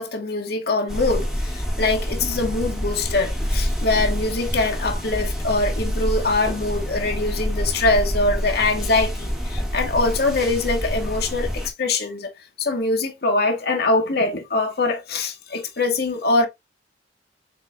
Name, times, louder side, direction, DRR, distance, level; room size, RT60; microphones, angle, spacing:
voice 1, 0.0-12.3 12.6-16.5, left 2 dB, 60° left, 1.0 m, -23 dB
sound 1, 0.9-11.7, equal, ahead, 1.2 m, -27 dB
7.3 x 2.7 x 2.2 m
head